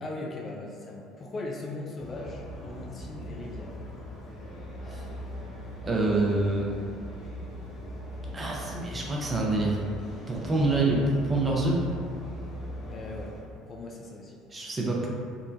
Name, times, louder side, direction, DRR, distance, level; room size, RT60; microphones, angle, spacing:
voice 1, 0.0-3.7 12.9-14.4, left 2 dB, 35° left, -1 dB, 0.3 m, -39 dB
sound 1, 2.0-13.4, equal, 65° left, 0.7 m, -40 dB
voice 2, 5.8-6.7 8.3-9.9 10.3-11.8 14.5-15.1, right 2 dB, 25° right, -3 dB, 0.5 m, -26 dB
3.0 x 2.1 x 2.6 m, 2.3 s
figure-of-eight pair, 60°, 0 cm